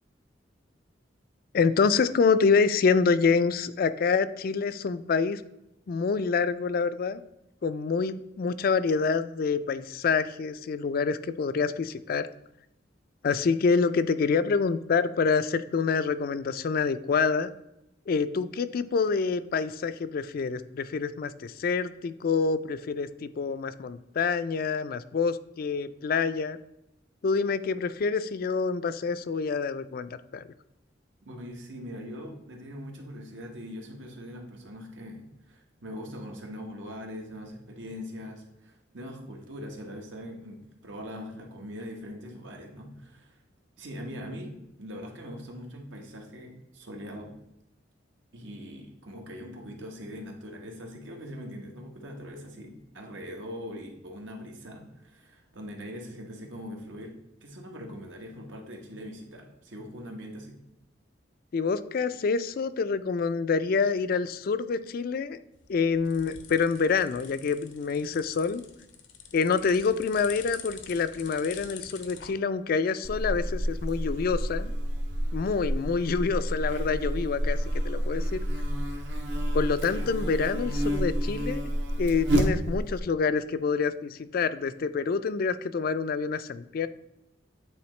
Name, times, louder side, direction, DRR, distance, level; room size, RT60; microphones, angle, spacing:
voice 1, 1.5-5.4 5.9-7.2 7.6-12.3 13.2-17.5 18.1-26.6 27.2-30.5 61.5-65.4 65.7-68.6 69.3-74.7 75.3-77.6 77.8-78.4 79.5-81.7 82.0-86.9, left 5 dB, 55° left, 13 dB, 0.3 m, -27 dB
voice 2, 31.2-43.4 43.8-47.4 48.3-57.1 57.4-60.5 80.0-80.1, equal, 85° right, 1 dB, 1.3 m, -42 dB
sound 1, 65.5-72.3, left 7 dB, 80° left, 0.8 m, -46 dB
Buzz, 73.0-83.0, equal, 70° right, 0.9 m, -29 dB
8.5 x 3.8 x 3.2 m, 0.87 s
head